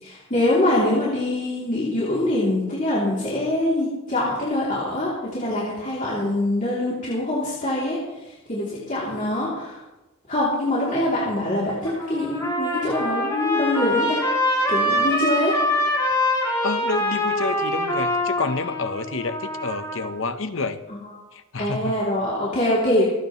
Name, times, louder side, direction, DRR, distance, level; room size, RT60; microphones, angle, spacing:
voice 1, 0.0-9.8 10.3-14.3 14.7-15.6 20.9-21.0 21.6-23.0, left 1 dB, 35° left, -7 dB, 3.1 m, -24 dB
Trumpet, 11.7-20.1, left 1 dB, 15° left, 3.8 m, -24 dB
voice 2, 16.6-20.8 21.3-22.0, left 3 dB, 70° left, 9 dB, 1.0 m, -29 dB
26.0 x 9.6 x 3.2 m, 1.0 s
head